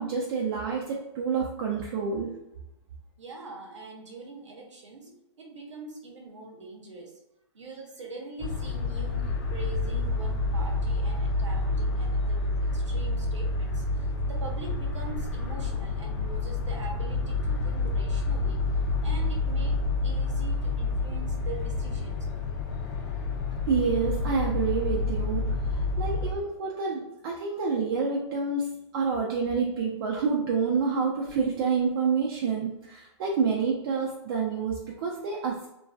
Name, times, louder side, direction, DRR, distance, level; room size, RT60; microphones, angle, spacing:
voice 1, 0.0-2.4 23.7-35.7, right 5 dB, 50° right, -2 dB, 0.4 m, -28 dB
voice 2, 3.2-7.2 7.5-18.6 19.0-22.2, right 3 dB, 80° right, 1 dB, 0.8 m, -43 dB
sound 1, 8.4-26.3, left 3 dB, 40° left, 0.5 m, -28 dB
2.6 x 2.2 x 2.2 m, 0.87 s
hypercardioid pair, 120°, 15 cm